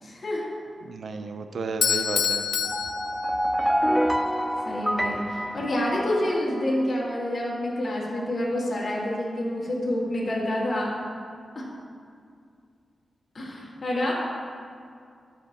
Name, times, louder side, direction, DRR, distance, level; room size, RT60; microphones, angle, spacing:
voice 1, 0.0-0.5 4.7-10.9 11.5-11.7 13.3-14.1, left 1 dB, 50° left, -6 dB, 2.0 m, -28 dB
voice 2, 0.8-2.4, right 4 dB, 75° right, 7 dB, 0.6 m, -33 dB
Bell / Doorbell, 1.8-3.9, left 7 dB, 85° left, 0.3 m, -27 dB
sound 1, 2.6-6.6, equal, 5° right, 0.3 m, -27 dB
13.5 x 5.9 x 2.9 m, 2.3 s
cardioid pair, 60°, 0 cm